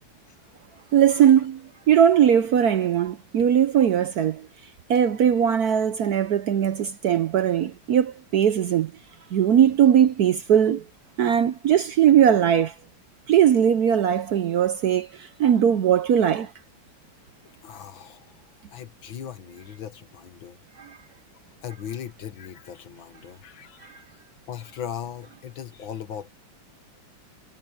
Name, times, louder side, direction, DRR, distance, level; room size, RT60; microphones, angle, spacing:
voice 1, 0.9-1.6 1.9-4.5 4.9-8.9 9.3-10.8 11.2-12.7 13.3-16.5 20.8-21.0, right 9 dB, 65° right, 1.0 m, -19 dB
voice 2, 17.6-18.3 18.7-20.6 21.6-24.0 24.5-26.3, left 9 dB, 75° left, 2.2 m, -38 dB
omnidirectional pair, 2.2 m